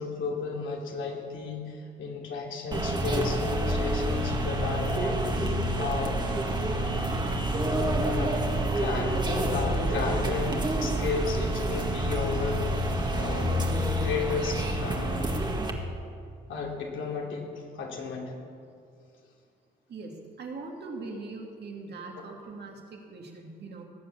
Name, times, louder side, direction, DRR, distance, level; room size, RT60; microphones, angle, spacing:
voice 1, 0.0-5.2 5.6-6.2 7.7-12.6 12.9-13.5 13.9-15.3 16.5-18.3, left 5 dB, 75° left, 0 dB, 3.0 m, -33 dB
sound 1, 2.7-15.7, right 1 dB, 20° right, 1.9 m, -28 dB
voice 2, 19.9-23.8, right 3 dB, 55° right, 1 dB, 2.5 m, -41 dB
18.5 x 7.8 x 7.2 m, 2.4 s
cardioid pair, 90°, 20 cm